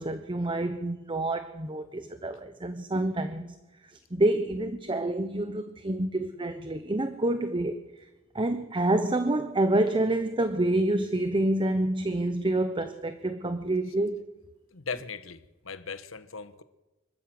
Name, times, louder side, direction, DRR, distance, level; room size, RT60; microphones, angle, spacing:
voice 1, 0.0-3.6 3.8-7.8 8.3-14.2, right 1 dB, 25° right, 1.0 m, -28 dB
voice 2, 14.7-16.6, left 5 dB, 90° left, 1.2 m, -38 dB
25.0 x 13.5 x 7.8 m
head